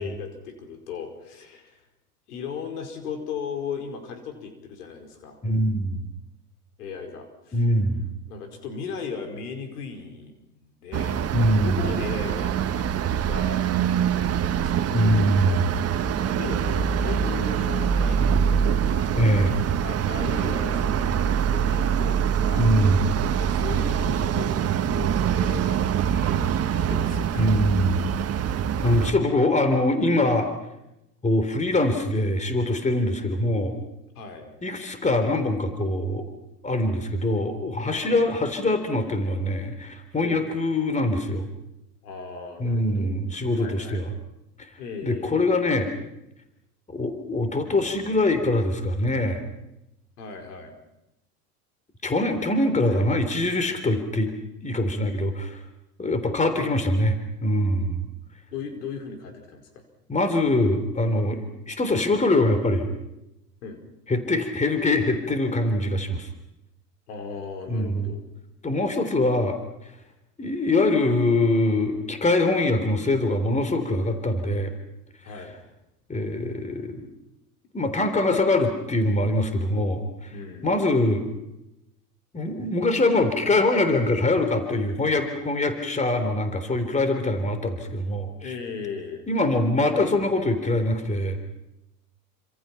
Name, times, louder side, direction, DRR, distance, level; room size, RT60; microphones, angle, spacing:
voice 1, 0.0-1.8 2.3-5.4 6.8-7.6 8.3-11.3 11.6-13.6 14.0-15.2 15.5-15.9 16.2-19.5 19.8-22.7 23.4-27.5 34.1-34.6 37.7-38.2 40.2-40.4 42.0-43.2 43.6-44.1 44.8-45.6 50.2-50.7 52.8-53.1 58.5-59.8 63.6-63.8 67.1-68.2 75.2-75.6 80.3-80.8 88.4-89.3, left 5 dB, 70° left, 5 dB, 4.9 m, -37 dB
voice 2, 5.4-6.0 7.5-8.0 11.3-11.8 14.9-15.8 19.1-19.5 22.6-23.1 27.4-28.0 28.8-30.5 31.2-33.7 34.6-36.3 36.6-41.5 42.6-44.1 45.0-45.9 46.9-49.4 52.0-54.3 54.6-55.6 56.0-57.2 57.4-58.0 60.1-62.9 64.1-66.3 67.7-68.1 68.6-69.6 70.4-74.7 76.1-77.1 77.7-80.3 80.6-81.3 82.3-88.5 89.3-91.4, left 1 dB, 15° left, 8 dB, 3.6 m, -23 dB
sound 1, 10.9-29.1, right 8 dB, 30° right, 1.6 m, -24 dB
28.0 x 26.0 x 5.9 m, 0.90 s
hypercardioid pair, 85°, 47 cm